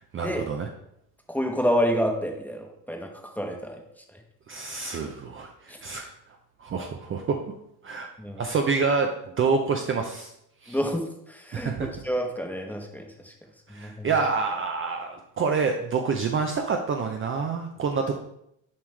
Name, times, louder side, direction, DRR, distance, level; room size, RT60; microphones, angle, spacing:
voice 1, 0.1-0.7 4.5-6.1 6.6-7.4 7.8-8.1 8.4-10.3 10.6-10.8 11.5-11.9 13.7-18.2, right 5 dB, 30° right, 3 dB, 0.5 m, -27 dB
voice 2, 1.3-3.1 3.4-3.8 8.2-8.4 10.7-11.0 11.3-11.7 12.0-13.1 13.7-14.1, equal, 5° left, 2 dB, 0.9 m, -28 dB
7.2 x 4.7 x 3.2 m, 0.77 s
cardioid pair, 110°, 41 cm